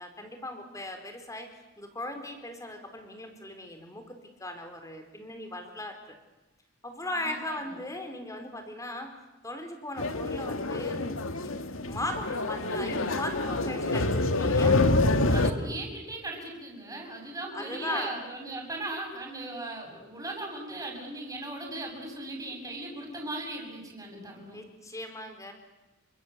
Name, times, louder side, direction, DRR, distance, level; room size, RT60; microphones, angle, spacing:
voice 1, 0.0-1.5 1.8-6.2 6.8-9.1 9.4-11.0 11.4-11.6 11.9-14.8 17.5-18.2 24.5-25.5, left 1 dB, 15° left, 6 dB, 4.4 m, -38 dB
voice 2, 7.2-7.6 15.3-24.6, right 2 dB, 15° right, 0 dB, 7.7 m, -38 dB
sound 1, 10.0-15.5, left 2 dB, 80° left, 2.0 m, -26 dB
29.0 x 25.0 x 8.3 m, 1.0 s
head